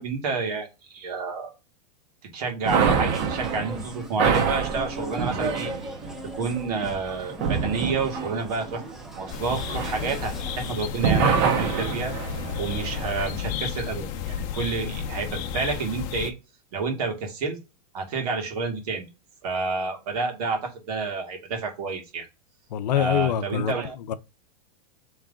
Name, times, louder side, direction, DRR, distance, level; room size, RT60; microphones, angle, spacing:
voice 1, 0.0-1.5 2.2-5.7 6.2-8.8 9.1-16.3 16.7-17.6 17.9-19.0 19.4-22.3 22.9-23.9, right 4 dB, 65° right, 1.7 m, -29 dB
sound 1, 2.6-10.7, right 1 dB, ahead, 0.4 m, -38 dB
sound 2, 2.7-10.7 11.0-13.3, right 6 dB, 45° right, 0.9 m, -27 dB
sound 3, 9.3-16.3, left 8 dB, 40° left, 0.7 m, -32 dB
voice 2, 22.7-23.7 24.1-24.2, left 10 dB, 85° left, 0.6 m, -24 dB
3.9 x 3.2 x 3.6 m
supercardioid pair, 145°, 21 cm